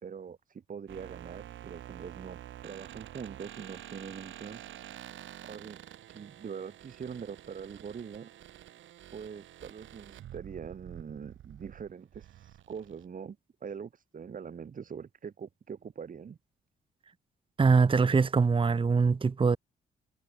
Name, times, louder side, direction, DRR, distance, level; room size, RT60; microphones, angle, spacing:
voice 1, 0.0-4.6 5.4-5.8 6.1-8.3 9.1-16.4, right 6 dB, 45° right, 2.1 m, -43 dB
sound 1, 0.9-13.0, right 12 dB, 75° right, 4.3 m, -48 dB
voice 2, 17.6-19.6, right 5 dB, 25° right, 1.0 m, -23 dB
cardioid pair, 90°, 20 cm